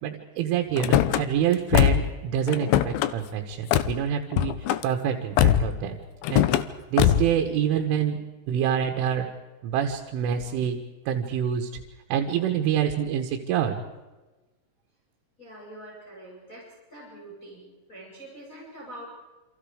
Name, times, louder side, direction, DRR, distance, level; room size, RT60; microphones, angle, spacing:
voice 1, 0.0-6.0 6.3-6.5 6.9-8.2 8.5-9.3 9.6-11.7 12.1-13.8, right 9 dB, 85° right, 3 dB, 3.9 m, -26 dB
Car / Slam, 0.8-1.2 1.7-2.2 2.5-3.1 3.7-3.9 4.3-4.8 5.4-5.8 6.2-6.7 7.0-7.4, left 11 dB, 85° left, 2.1 m, -21 dB
voice 2, 15.4-19.1, right 1 dB, 15° left, -6 dB, 7.4 m, -44 dB
28.5 x 27.0 x 5.0 m, 1.1 s
omnidirectional pair, 5.5 m